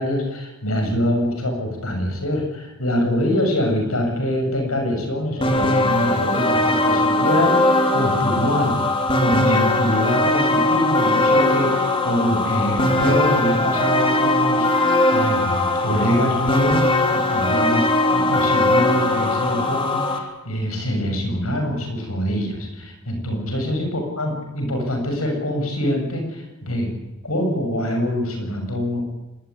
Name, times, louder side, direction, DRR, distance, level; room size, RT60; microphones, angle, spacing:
voice 1, 0.0-8.8 9.2-17.8 18.1-26.9 27.2-29.0, equal, 80° left, 3 dB, 7.1 m, -24 dB
sound 1, 5.4-20.2, left 2 dB, 25° left, 3.3 m, -20 dB
25.0 x 21.0 x 9.7 m, 1.1 s
head